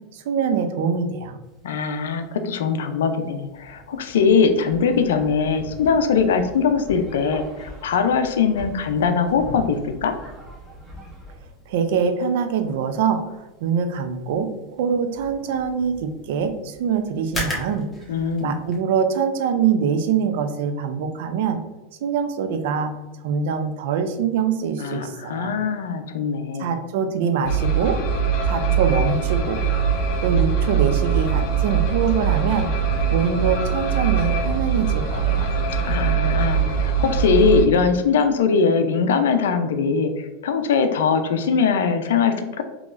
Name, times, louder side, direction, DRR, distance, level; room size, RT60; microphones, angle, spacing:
voice 1, 0.1-1.4 11.7-13.2 13.6-14.5 14.8-17.9 18.4-21.6 22.0-22.9 23.2-25.5 26.6-28.0 28.5-29.6 30.2-32.7 33.1-35.5, right 6 dB, 70° right, 7 dB, 0.4 m, -24 dB
sound 1, 1.4-18.8, left 1 dB, 10° left, 1.2 m, -41 dB
voice 2, 1.6-10.2 18.1-18.5 24.8-26.7 35.8-40.1 40.4-42.6, left 5 dB, 85° left, 8 dB, 0.4 m, -21 dB
sound 2, 4.7-11.3, equal, 10° right, 1.2 m, -40 dB
sound 3, 27.5-37.6, right 6 dB, 55° left, 0.8 m, -22 dB
3.8 x 2.9 x 2.4 m, 1.1 s
hypercardioid pair, 115°, 0 cm